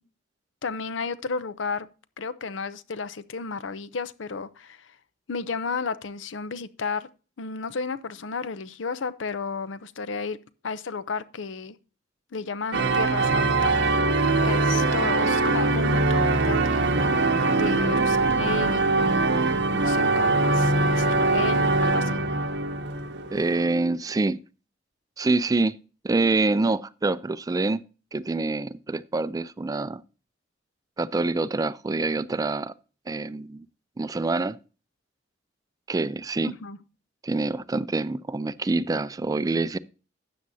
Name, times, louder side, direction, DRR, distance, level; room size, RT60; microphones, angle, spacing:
voice 1, 0.6-1.9 2.2-4.9 5.3-7.1 7.4-10.4 10.6-11.8 12.3-13.8 14.4-16.8 17.5-19.2 19.7-22.2 36.4-36.8, left 4 dB, 85° left, 0.7 m, -33 dB
sound 1, 12.7-23.7, right 3 dB, 65° right, 0.8 m, -22 dB
voice 2, 23.3-24.4 25.2-25.7 26.0-27.8 28.1-30.0 31.0-32.7 33.1-33.7 34.0-34.6 35.9-36.5 37.2-39.8, right 3 dB, 20° right, 0.3 m, -26 dB
12.5 x 8.5 x 2.7 m
head